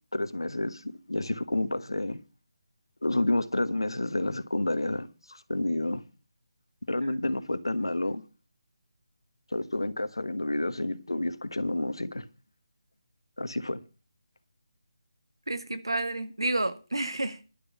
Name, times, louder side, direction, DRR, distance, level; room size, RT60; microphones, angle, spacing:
voice 1, 0.1-2.2 3.0-6.0 6.9-8.2 9.5-12.2 13.4-13.8, left 2 dB, 75° left, 1.3 m, -29 dB
voice 2, 15.5-17.5, right 2 dB, 75° right, 1.8 m, -30 dB
11.5 x 6.7 x 8.7 m
figure-of-eight pair, 150°, 2 cm